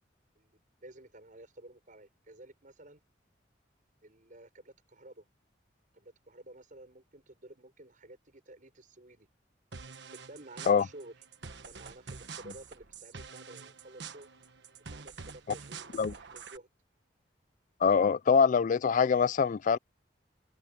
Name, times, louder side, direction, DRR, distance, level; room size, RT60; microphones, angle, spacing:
voice 1, 0.8-3.0 4.0-5.2 5.9-9.3 10.1-11.1 11.7-14.3 14.8-15.9 16.2-16.7, right 1 dB, 45° right, 6.7 m, -52 dB
sound 1, 9.7-16.6, right 5 dB, 70° right, 1.3 m, -47 dB
voice 2, 17.8-19.8, left 6 dB, 45° left, 0.4 m, -24 dB
head